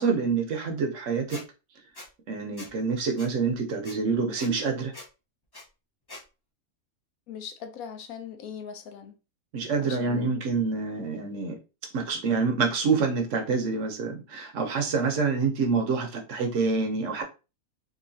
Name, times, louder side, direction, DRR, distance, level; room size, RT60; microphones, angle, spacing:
voice 1, 0.0-1.4 2.3-4.9 9.5-11.6 11.9-17.2, right 4 dB, 65° right, 1.0 m, -27 dB
Squeak, 1.3-1.4 2.0-2.1 2.6-2.7 3.2-3.3 3.8-4.0 4.4-4.5 4.9-5.1 5.5-5.6 6.1-6.2, left 2 dB, 30° left, 0.5 m, -43 dB
voice 2, 7.3-9.2 9.8-10.4, left 7 dB, 85° left, 1.1 m, -40 dB
3.8 x 2.6 x 2.7 m
omnidirectional pair, 1.5 m